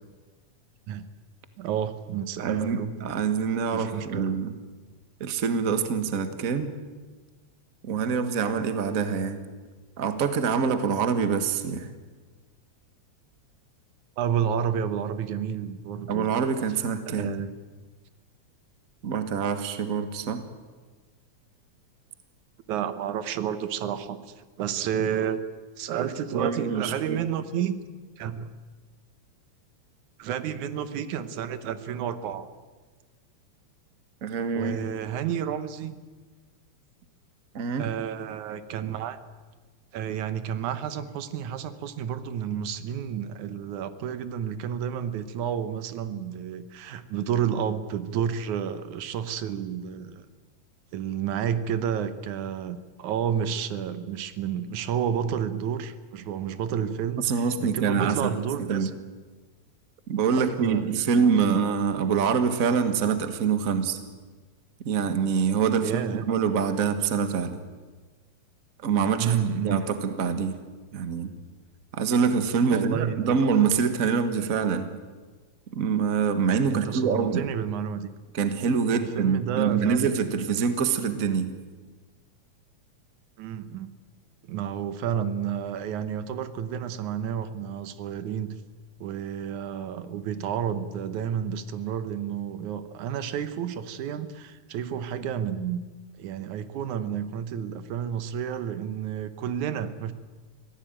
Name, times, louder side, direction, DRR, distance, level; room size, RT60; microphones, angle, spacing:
voice 1, 1.6-3.0 3.7-4.3 14.2-16.3 17.1-17.5 22.7-25.4 25.8-27.8 28.2-28.5 30.2-32.5 34.5-36.0 37.8-39.2 39.9-50.2 50.9-58.9 60.4-60.9 61.4-61.6 65.8-66.3 69.2-69.8 72.7-73.4 76.7-78.1 78.9-80.1 83.4-83.9 84.4-88.5 89.0-95.8 96.2-100.1, right 8 dB, 85° right, 12 dB, 2.5 m, -30 dB
voice 2, 2.4-4.5 5.2-6.7 7.8-9.4 10.0-11.9 16.1-17.3 19.0-20.4 26.3-27.2 34.2-34.8 37.5-37.9 57.2-58.3 58.6-58.9 60.1-64.0 64.8-66.0 66.3-67.6 68.8-69.4 69.6-70.6 70.9-71.3 71.9-74.9 75.7-77.5 78.3-81.6, right 6 dB, 40° right, 9 dB, 1.4 m, -25 dB
25.0 x 17.0 x 9.0 m, 1.4 s
omnidirectional pair, 3.3 m